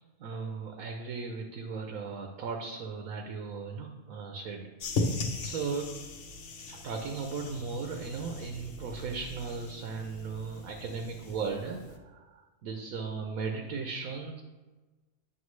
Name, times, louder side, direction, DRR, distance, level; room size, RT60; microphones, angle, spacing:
voice 1, 0.0-5.1 5.4-5.9 6.7-14.4, right 5 dB, 70° right, 3 dB, 1.1 m, -37 dB
sound 1, 4.8-12.0, left 3 dB, 55° left, 1.0 m, -38 dB
9.5 x 6.1 x 3.2 m, 1.2 s
omnidirectional pair, 1.6 m